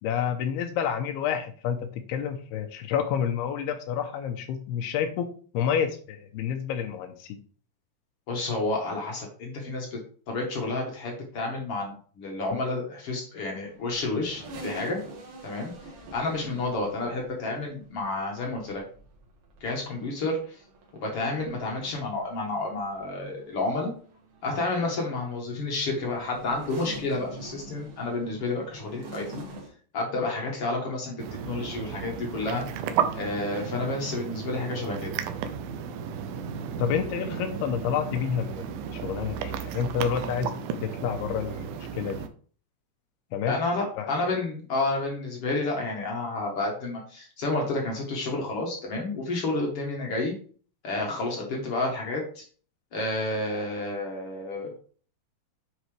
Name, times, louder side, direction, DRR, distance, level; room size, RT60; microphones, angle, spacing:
voice 1, 0.0-7.4 36.8-40.5 40.8-42.3 43.3-43.6 44.0-44.1, left 8 dB, 85° left, 6 dB, 2.6 m, -29 dB
voice 2, 8.3-10.0 10.3-15.0 15.4-15.7 16.1-18.8 19.6-20.6 20.9-23.9 24.4-29.4 29.9-32.7 33.1-35.1 43.5-50.4 50.8-52.4 52.9-54.7, left 2 dB, 60° left, 0 dB, 1.6 m, -30 dB
sound 1, 13.6-29.7, right 2 dB, 55° right, 3.0 m, -46 dB
sound 2, 31.2-42.3, right 8 dB, 80° right, 2.4 m, -34 dB
9.3 x 5.0 x 3.3 m, 0.43 s
omnidirectional pair, 4.7 m